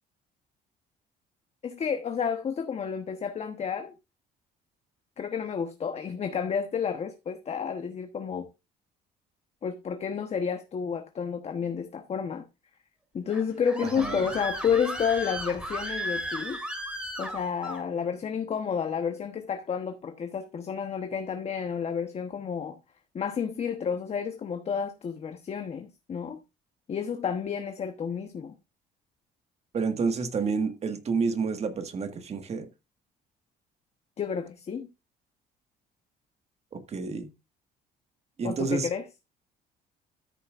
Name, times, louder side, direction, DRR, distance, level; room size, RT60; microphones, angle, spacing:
voice 1, 1.6-3.9 5.2-8.5 9.6-12.4 13.1-16.6 17.2-22.8 23.1-26.4 26.9-28.6 34.2-34.9 38.4-39.0, left 7 dB, 40° left, 1.1 m, -30 dB
Screaming, 13.3-17.8, equal, 5° right, 2.8 m, -35 dB
voice 2, 13.8-14.3 29.7-32.7 36.7-37.3 38.4-38.9, right 4 dB, 40° right, 1.7 m, -29 dB
13.5 x 7.1 x 2.5 m
cardioid pair, 110°, 17 cm